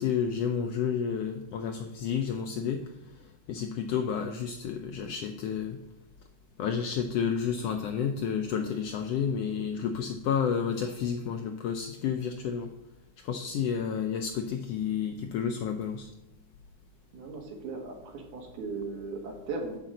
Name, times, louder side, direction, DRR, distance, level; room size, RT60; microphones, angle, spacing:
voice 1, 0.0-2.9 3.5-5.8 6.6-12.7 13.2-16.1, left 7 dB, 85° left, 6 dB, 1.4 m, -30 dB
voice 2, 17.1-19.8, right 3 dB, 90° right, 0 dB, 3.2 m, -37 dB
10.0 x 3.8 x 7.5 m, 0.91 s
omnidirectional pair, 3.4 m